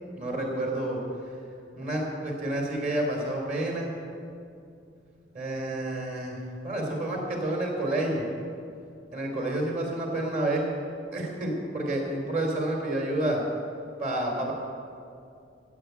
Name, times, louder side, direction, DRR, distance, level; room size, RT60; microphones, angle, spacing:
voice 1, 0.1-1.0 1.8-3.9 5.3-8.2 9.1-10.6 11.1-13.4 14.0-14.5, right 1 dB, 45° right, 0 dB, 3.3 m, -29 dB
15.5 x 8.3 x 8.1 m, 2.5 s
head